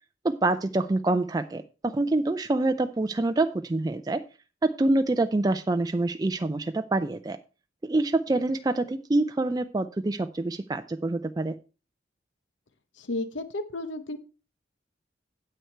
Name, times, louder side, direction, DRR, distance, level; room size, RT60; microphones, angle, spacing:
voice 1, 0.2-4.2 4.6-7.4 7.8-11.5, right 2 dB, 20° right, 0.4 m, -26 dB
voice 2, 13.0-14.2, left 2 dB, 80° left, 0.9 m, -33 dB
9.3 x 7.9 x 4.5 m
head